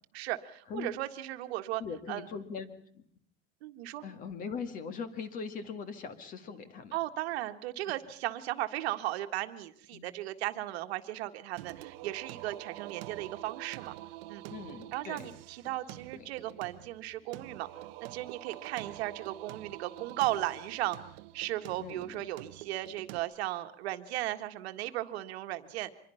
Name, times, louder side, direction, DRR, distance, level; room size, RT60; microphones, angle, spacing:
voice 1, 0.1-1.8 2.1-2.2 3.6-4.0 6.9-13.9 14.3-14.4 14.9-17.7 18.0-21.0 21.3-25.9, right 15 dB, 80° right, 8 dB, 1.7 m, -36 dB
voice 2, 1.8-2.7 2.9-3.0 4.0-6.9 9.9-10.1 14.5-15.3 16.2-16.3 21.8-22.1, left 5 dB, 25° left, 10 dB, 1.7 m, -40 dB
Singing, 11.6-23.2, right 17 dB, 60° right, 1.0 m, -47 dB
25.5 x 22.0 x 5.7 m, 0.64 s
supercardioid pair, 180°, 31 cm